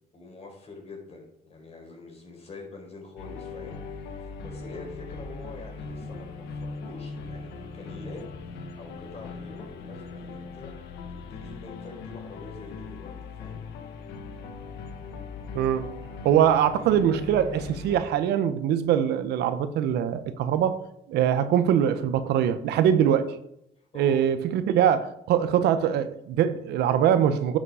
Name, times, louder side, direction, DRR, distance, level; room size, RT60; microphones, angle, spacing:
voice 1, 0.1-10.7 11.1-13.6 23.8-24.2, left 3 dB, 40° left, 0 dB, 4.4 m, -45 dB
sound 1, 3.2-18.1, left 4 dB, 90° left, 1.3 m, -39 dB
voice 2, 15.5-15.9 16.2-20.8 21.1-23.4 23.9-27.6, right 9 dB, 80° right, 11 dB, 0.9 m, -23 dB
10.5 x 7.6 x 4.9 m, 0.79 s
cardioid pair, 110°, 17 cm